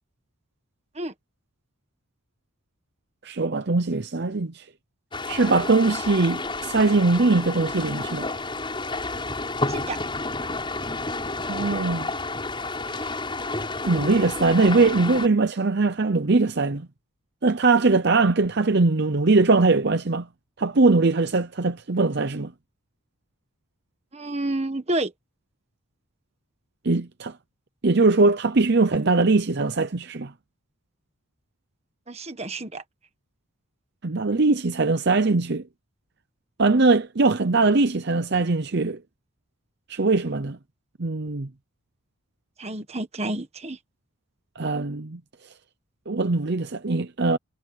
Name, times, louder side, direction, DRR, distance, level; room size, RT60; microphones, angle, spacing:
voice 1, 3.2-4.6 5.3-8.3 11.5-12.1 12.9-13.1 13.8-16.9 17.4-20.3 20.6-22.5 26.8-27.3 27.8-30.3 34.0-35.6 36.6-39.0 39.9-40.6 41.0-41.5 44.6-45.2 46.1-47.4, right 3 dB, 55° right, 0.7 m, -21 dB
sound 1, 5.1-15.3, left 3 dB, 25° left, 6.9 m, -30 dB
voice 2, 9.7-10.0 24.1-25.1 32.1-32.8 42.6-43.8, right 2 dB, 30° right, 1.5 m, -29 dB
head